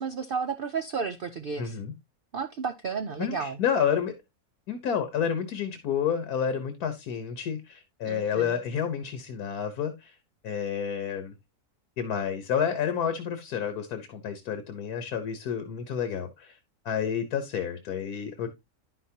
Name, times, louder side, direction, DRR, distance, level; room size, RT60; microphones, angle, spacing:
voice 1, 0.0-1.8 2.3-3.6 8.0-8.6, right 5 dB, 70° right, 0.5 m, -32 dB
voice 2, 1.6-1.9 3.2-4.1 4.7-10.1 10.4-11.3 12.0-16.6 16.8-18.5, left 8 dB, 75° left, 1.5 m, -30 dB
10.5 x 5.9 x 2.8 m
omnidirectional pair, 1.6 m